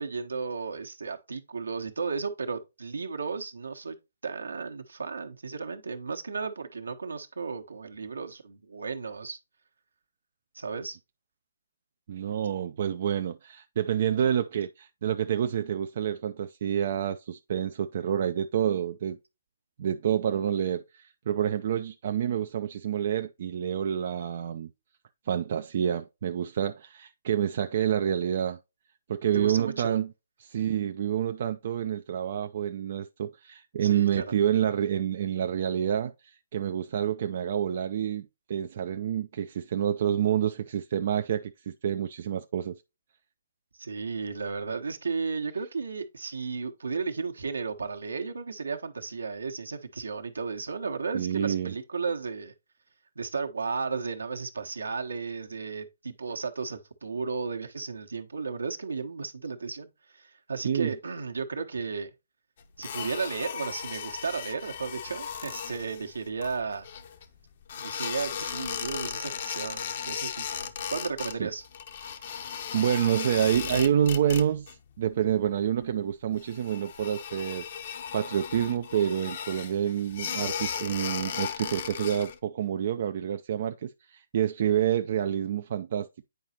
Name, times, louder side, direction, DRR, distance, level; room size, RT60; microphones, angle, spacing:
voice 1, 0.0-4.0 4.2-9.4 10.5-11.0 29.3-30.0 33.8-34.3 43.7-52.5 53.2-62.1 62.8-66.9 67.8-71.7, right 4 dB, 70° right, 1.1 m, -34 dB
voice 2, 12.1-19.2 19.8-24.7 25.3-28.6 29.1-30.1 30.4-42.8 51.1-51.7 60.6-60.9 71.4-71.5 72.7-77.7 78.1-86.3, right 9 dB, 50° right, 0.4 m, -28 dB
sound 1, 62.8-67.3 67.7-71.4 71.6-74.7 75.0-75.5 75.8-75.9 76.4-82.4, left 7 dB, 45° left, 0.8 m, -36 dB
9.0 x 4.9 x 2.8 m
figure-of-eight pair, 130°, 0 cm